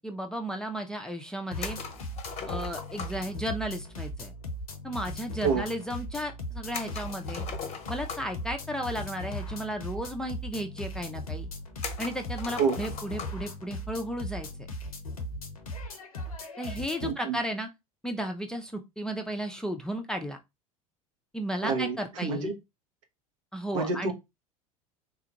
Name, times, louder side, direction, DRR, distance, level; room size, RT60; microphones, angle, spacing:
voice 1, 0.0-1.8 2.5-4.3 4.8-7.4 7.9-11.5 12.0-14.5 16.6-17.7 18.0-20.4 21.3-22.5 23.5-24.1, equal, 5° left, 0.6 m, -34 dB
sound 1, 1.5-17.1, left 1 dB, 80° left, 0.7 m, -38 dB
sound 2, 1.6-3.3 6.7-8.5 9.5-9.6 9.9-10.0 10.8-10.9 11.8-13.5, left 6 dB, 35° left, 0.8 m, -39 dB
voice 2, 17.0-17.4 21.6-22.0 22.2-22.6 23.7-24.1, right 5 dB, 70° right, 0.9 m, -27 dB
3.6 x 2.4 x 3.0 m
figure-of-eight pair, 75°, 18 cm